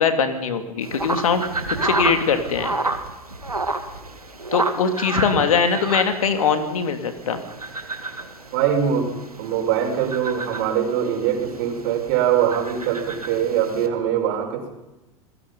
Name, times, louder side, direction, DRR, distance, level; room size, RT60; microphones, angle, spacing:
voice 1, 0.0-1.4 1.8-2.7 4.5-7.4, left 6 dB, 65° left, 8 dB, 2.9 m, -21 dB
sound 1, 0.8-13.9, right 2 dB, 85° right, 2.1 m, -31 dB
voice 2, 8.5-9.1 9.4-14.7, right 9 dB, 50° right, 4 dB, 5.6 m, -22 dB
28.5 x 21.0 x 5.5 m, 0.99 s
figure-of-eight pair, 85°, 19 cm